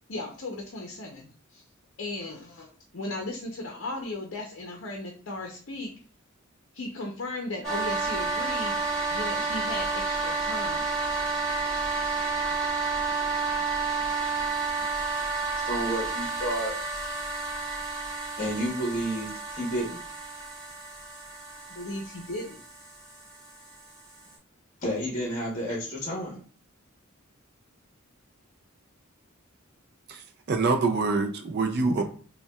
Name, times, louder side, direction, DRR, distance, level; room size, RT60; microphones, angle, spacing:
voice 1, 0.1-1.6 2.0-2.7 2.9-5.9 6.7-10.9 21.7-22.6, left 2 dB, 65° left, 1 dB, 0.6 m, -36 dB
sound 1, 7.6-24.3, right 4 dB, 5° left, 1.7 m, -31 dB
voice 2, 15.4-16.7 18.4-20.0 24.8-26.4 31.8-32.0, equal, 40° left, -2 dB, 0.9 m, -31 dB
voice 3, 30.1-32.0, right 3 dB, 50° right, 6 dB, 0.4 m, -26 dB
5.3 x 2.2 x 2.3 m, 0.41 s
head